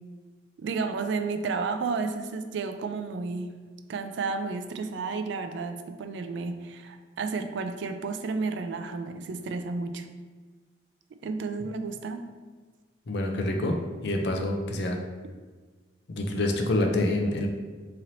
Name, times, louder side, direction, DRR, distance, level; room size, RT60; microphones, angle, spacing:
voice 1, 0.6-3.5 3.9-10.1 11.2-12.2, right 4 dB, 75° right, 7 dB, 0.3 m, -32 dB
voice 2, 13.1-13.8 14.0-15.0 16.1-17.5, left 1 dB, 65° left, 3 dB, 0.5 m, -26 dB
3.1 x 2.8 x 3.8 m, 1.4 s
head